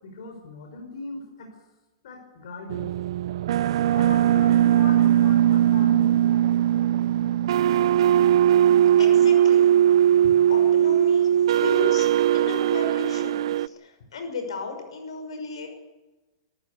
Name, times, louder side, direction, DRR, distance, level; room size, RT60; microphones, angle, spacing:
voice 1, 0.0-1.6 2.0-2.9 3.9-6.2 10.2-10.3, left 2 dB, 70° left, 4 dB, 5.4 m, -39 dB
sound 1, 2.7-13.7, right 11 dB, 70° right, 0.6 m, -19 dB
voice 2, 9.0-9.8 10.5-15.7, left 4 dB, 85° left, 6 dB, 6.0 m, -35 dB
24.5 x 14.5 x 8.3 m, 1.1 s
hypercardioid pair, 145°, 3 cm